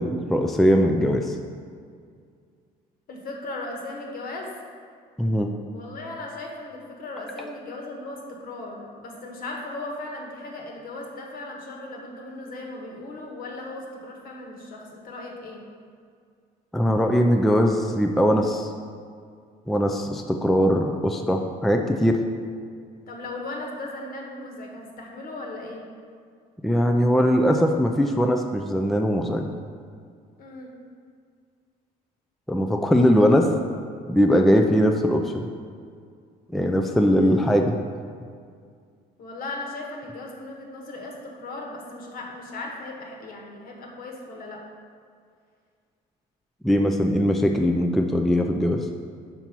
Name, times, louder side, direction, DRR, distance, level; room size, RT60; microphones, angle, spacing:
voice 1, 0.0-1.4 5.2-5.5 7.4-7.5 16.7-18.7 19.7-22.2 26.6-29.5 32.5-33.5 34.1-35.5 36.5-37.7 46.6-48.9, equal, ahead, 3 dB, 0.4 m, -21 dB
voice 2, 3.1-4.5 5.7-15.6 23.1-25.9 30.4-30.7 37.1-37.5 39.2-44.6, left 2 dB, 60° left, 0 dB, 1.4 m, -37 dB
5.4 x 4.5 x 5.9 m, 2.2 s
cardioid pair, 110°, 17 cm